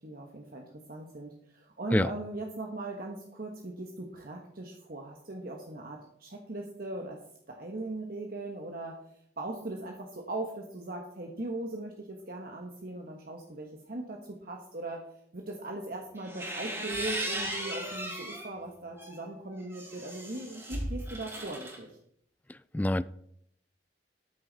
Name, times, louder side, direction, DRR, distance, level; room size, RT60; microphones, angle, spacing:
voice 1, 0.0-7.2 7.5-9.0 9.4-22.0, right 2 dB, 55° right, 1.4 m, -39 dB
sound 1, 16.2-18.5 19.0-21.8, right 1 dB, 15° right, 3.1 m, -37 dB
voice 2, 22.5-23.0, left 1 dB, 10° left, 0.3 m, -27 dB
13.5 x 9.7 x 4.1 m
head